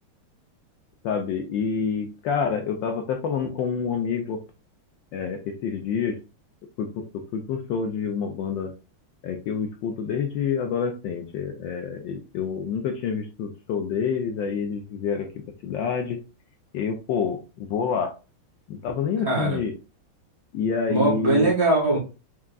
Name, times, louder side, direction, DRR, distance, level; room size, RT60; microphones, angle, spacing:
voice 1, 1.0-4.4 5.1-6.2 6.8-8.7 9.2-15.3 15.6-16.2 16.7-18.1 18.7-19.7 20.5-21.5, left 6 dB, 70° left, 4 dB, 1.2 m, -27 dB
voice 2, 19.2-19.6 20.9-22.0, right 2 dB, 35° right, -2 dB, 1.4 m, -21 dB
4.6 x 3.7 x 2.3 m, 0.31 s
omnidirectional pair, 2.4 m